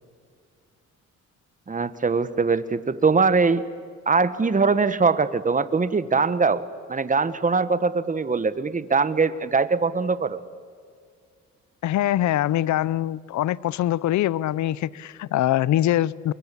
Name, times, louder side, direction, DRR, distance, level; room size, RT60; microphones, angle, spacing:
voice 1, 1.7-3.6 4.1-6.6 6.9-10.4, right 4 dB, 25° right, 1.5 m, -22 dB
voice 2, 11.8-16.3, left 13 dB, 70° left, 0.7 m, -23 dB
28.5 x 23.0 x 8.6 m
cardioid pair, 90°, 30 cm